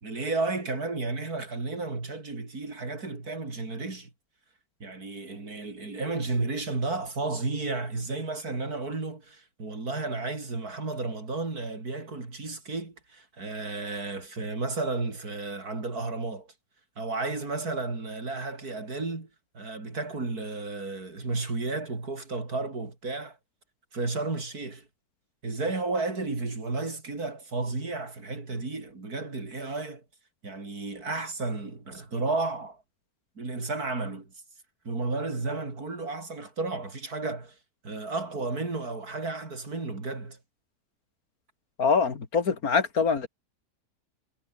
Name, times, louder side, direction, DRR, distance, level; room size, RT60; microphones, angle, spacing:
voice 1, 0.0-4.1 4.8-16.5 17.0-19.3 19.5-23.4 23.9-24.9 25.4-30.0 30.4-32.8 33.4-34.3 34.8-37.5 37.8-40.4, right 3 dB, 75° right, 4.7 m, -32 dB
voice 2, 41.8-43.3, left 5 dB, 70° left, 2.5 m, -24 dB
omnidirectional pair, 1.6 m